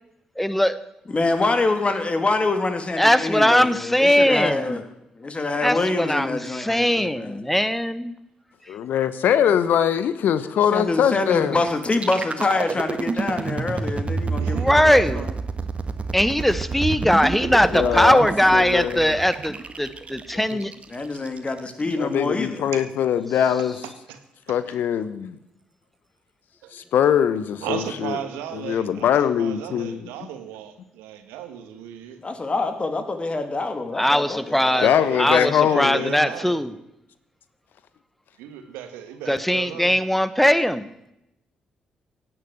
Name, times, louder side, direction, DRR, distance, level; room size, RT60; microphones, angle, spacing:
voice 1, 0.4-0.8 3.0-4.8 5.6-8.1 14.5-15.2 16.1-20.7 34.0-36.8 39.3-40.9, equal, 5° left, 14 dB, 1.3 m, -20 dB
voice 2, 1.1-4.8 5.2-7.4 10.7-15.2 20.9-22.6 32.2-34.9, left 3 dB, 35° left, 8 dB, 2.6 m, -25 dB
voice 3, 8.7-11.6 17.7-19.1 20.5-20.6 22.0-23.7 24.5-25.4 26.7-28.2 28.5-30.1 34.8-36.2, left 9 dB, 65° left, 14 dB, 0.9 m, -22 dB
sound 1, 11.8-21.8, right 4 dB, 35° right, 1.6 m, -29 dB
voice 4, 14.4-15.3 24.1-24.2 26.6-26.7 27.6-32.2 34.6-35.2 35.6-36.6 38.4-39.9, right 10 dB, 75° right, 8 dB, 1.6 m, -35 dB
17.0 x 8.9 x 7.7 m, 0.84 s
hypercardioid pair, 40°, 4 cm